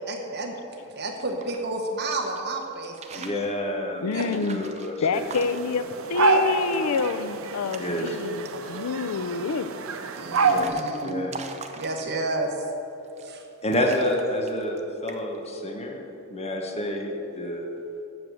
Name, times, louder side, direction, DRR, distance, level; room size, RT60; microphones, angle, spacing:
voice 1, 0.1-0.5 0.9-3.3 4.1-4.3 10.2-11.3 11.8-12.5 13.2-13.4, right 2 dB, 50° right, 2 dB, 1.0 m, -31 dB
sound 1, 1.1-2.4 2.8-3.5 4.1-5.9 6.3-6.4 6.6-7.1 7.5-8.1 8.5-9.0 9.7-12.4 13.0-13.5 13.7-14.8 15.1-15.5, right 5 dB, 30° right, 0.6 m, -42 dB
voice 2, 3.1-4.9 7.8-8.2 10.4-11.5 13.6-17.7, left 1 dB, 30° left, 1 dB, 1.1 m, -29 dB
voice 3, 4.0-4.6 5.0-9.7, left 5 dB, 90° left, 12 dB, 0.5 m, -27 dB
sound 2, 5.1-10.7, right 4 dB, 65° right, 0.7 m, -27 dB
7.9 x 6.8 x 7.7 m, 3.0 s
head